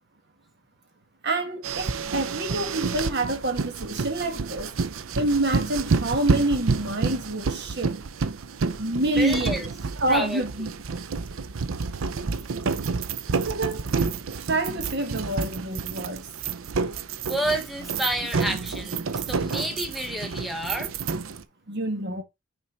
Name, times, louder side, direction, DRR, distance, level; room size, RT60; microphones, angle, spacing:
voice 1, 1.2-4.7 5.1-8.0 8.8-9.7 10.0-10.7 13.3-13.8 14.5-16.3 21.7-22.2, right 2 dB, 55° right, 1.6 m, -27 dB
sound 1, 1.6-21.4, right 4 dB, 80° right, 0.6 m, -29 dB
voice 2, 9.1-9.7 10.1-10.4 17.3-20.9, right 1 dB, ahead, 1.0 m, -29 dB
6.3 x 4.5 x 4.3 m
head